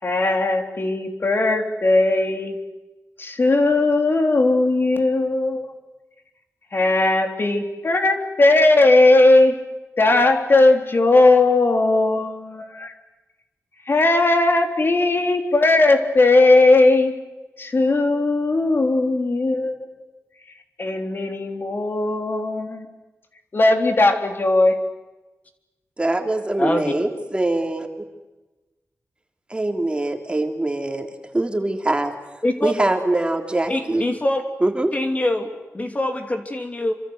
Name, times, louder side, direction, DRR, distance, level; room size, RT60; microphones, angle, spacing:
voice 1, 0.0-2.6 3.2-5.6 6.7-9.6 10.0-12.9 13.9-17.1 17.6-19.9 20.8-22.9 23.5-24.8, left 2 dB, 45° left, 5 dB, 3.6 m, -18 dB
voice 2, 26.0-27.9 29.5-32.1 32.6-34.0 34.6-34.9, right 2 dB, 20° right, 4 dB, 3.4 m, -23 dB
voice 3, 26.6-26.9 32.4-32.7 33.7-34.4 34.9-36.9, left 1 dB, 30° left, 5 dB, 2.9 m, -24 dB
27.5 x 26.0 x 8.1 m, 1.1 s
wide cardioid pair, 125°, 5 cm